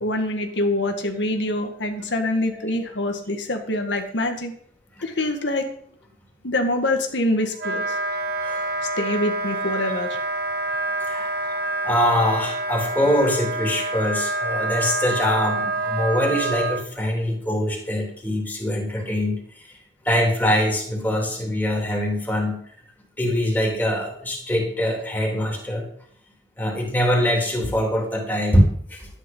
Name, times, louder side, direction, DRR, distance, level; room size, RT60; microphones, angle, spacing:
voice 1, 0.0-4.5 5.0-5.7 6.4-8.0 9.0-10.1, left 1 dB, 80° left, 4 dB, 1.8 m, -25 dB
Wind instrument woodwind instrument, 7.5-16.8, right 2 dB, 55° right, 1.7 m, -27 dB
voice 2, 11.1-19.8 20.0-22.6 23.2-25.9 26.6-29.1, equal, 10° left, -1 dB, 3.2 m, -23 dB
12.5 x 10.0 x 5.6 m, 0.62 s
head